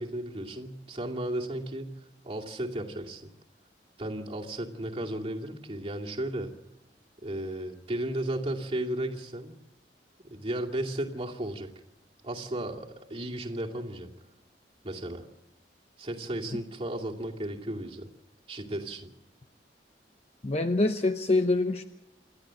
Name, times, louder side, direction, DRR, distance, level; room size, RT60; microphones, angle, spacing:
voice 1, 0.0-1.9 2.2-3.3 4.0-6.5 7.2-9.5 10.2-11.7 12.2-14.1 14.8-15.2 16.0-18.1 18.5-19.1, right 1 dB, 35° right, 0 dB, 2.5 m, -34 dB
voice 2, 20.4-21.8, left 2 dB, 35° left, 7 dB, 0.9 m, -25 dB
28.0 x 13.0 x 7.6 m, 0.94 s
head